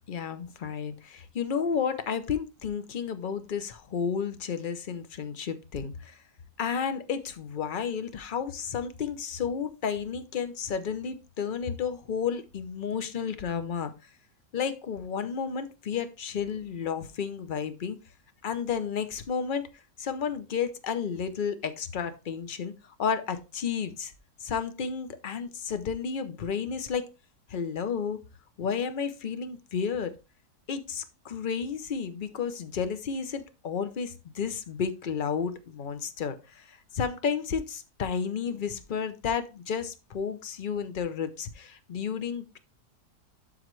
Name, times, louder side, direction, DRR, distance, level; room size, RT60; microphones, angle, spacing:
voice 1, 0.1-6.2 6.6-13.9 14.5-18.0 18.4-19.7 20.0-22.7 23.0-24.1 24.4-27.0 27.5-28.2 28.6-30.1 30.7-42.6, left 6 dB, 50° left, 0.6 m, -32 dB
12.0 x 4.0 x 3.2 m
omnidirectional pair, 1.8 m